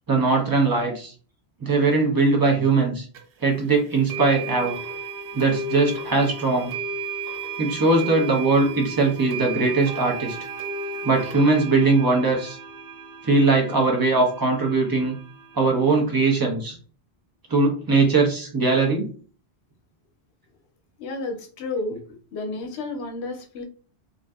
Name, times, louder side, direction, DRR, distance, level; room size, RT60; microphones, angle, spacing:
voice 1, 0.1-1.1 1.6-3.0 3.4-4.8 5.3-6.7 7.6-10.4 11.0-12.6 13.2-15.2 15.5-16.8 17.5-19.1, right 3 dB, 25° right, 0 dB, 0.6 m, -20 dB
sound 1, 3.1-3.2 4.1-15.7, right 3 dB, 65° right, 0.7 m, -34 dB
voice 2, 21.0-22.0 22.3-23.6, left 2 dB, 75° left, 4 dB, 0.8 m, -31 dB
2.5 x 2.5 x 2.2 m, 0.40 s
omnidirectional pair, 1.1 m